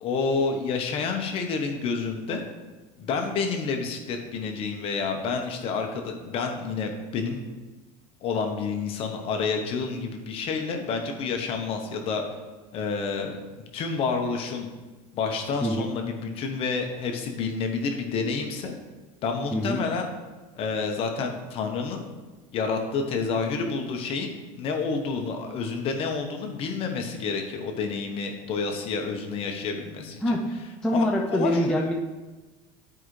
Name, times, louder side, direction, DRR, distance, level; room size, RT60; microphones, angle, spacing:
voice 1, 0.0-2.4 3.0-7.4 8.2-12.2 12.7-13.4 13.7-14.7 15.1-18.7 19.2-20.1 20.5-22.0 22.5-30.3 30.9-31.0 31.3-31.7, left 4 dB, 35° left, 3 dB, 1.0 m, -29 dB
voice 2, 30.8-31.9, left 1 dB, 5° left, -2 dB, 0.4 m, -24 dB
11.5 x 4.9 x 3.2 m, 1.2 s
cardioid pair, 170°, 16 cm